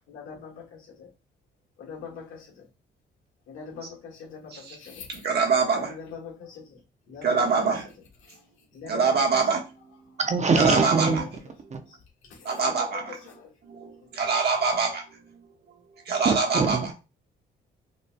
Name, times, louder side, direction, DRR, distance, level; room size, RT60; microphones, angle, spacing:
voice 1, 0.1-1.1 1.8-2.7 3.5-5.3 5.8-7.9 8.2-8.4 8.7-9.6 11.9-12.0 12.2-13.5 14.0-14.1, left 6 dB, 85° left, -3 dB, 1.7 m, -43 dB
voice 2, 5.2-5.9 7.2-7.8 8.9-9.6 10.6-11.1 12.5-13.0 14.2-14.9 16.1-16.8, right 4 dB, 55° right, 0 dB, 1.4 m, -23 dB
voice 3, 10.2-11.2 11.7-11.8 16.2-16.9, right 4 dB, 35° right, 7 dB, 0.7 m, -23 dB
5.1 x 3.0 x 2.2 m, 0.30 s
cardioid pair, 90°, 20 cm